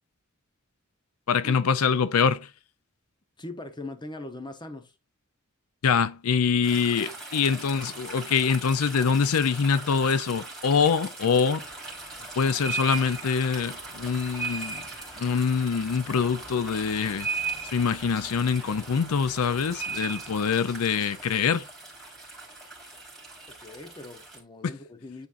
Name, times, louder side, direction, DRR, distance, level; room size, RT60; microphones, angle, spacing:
voice 1, 1.3-2.5 5.8-11.6 12.4-14.8 15.2-17.3 17.6-21.6, left 6 dB, 75° left, 0.5 m, -24 dB
voice 2, 3.4-4.9 23.6-25.3, left 2 dB, 20° left, 0.9 m, -40 dB
sound 1, 6.6-24.4, right 4 dB, 5° left, 2.8 m, -38 dB
9.5 x 4.3 x 2.5 m
head